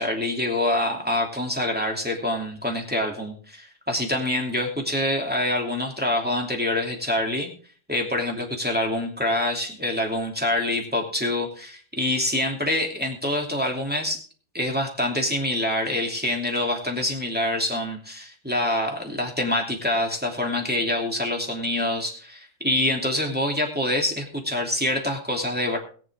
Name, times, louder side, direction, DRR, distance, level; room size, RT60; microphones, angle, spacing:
voice 1, 0.0-7.5 7.9-14.2 14.5-25.8, left 1 dB, 5° right, 0 dB, 2.6 m, -26 dB
21.5 x 7.7 x 3.6 m, 0.41 s
omnidirectional pair, 2.2 m